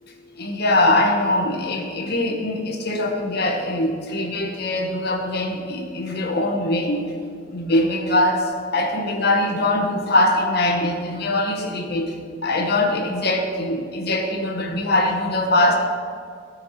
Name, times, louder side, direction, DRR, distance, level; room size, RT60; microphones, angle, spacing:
voice 1, 0.4-7.0 7.5-12.1 12.4-15.8, left 1 dB, 60° left, 2 dB, 1.3 m, -22 dB
14.5 x 5.7 x 4.4 m, 2.2 s
head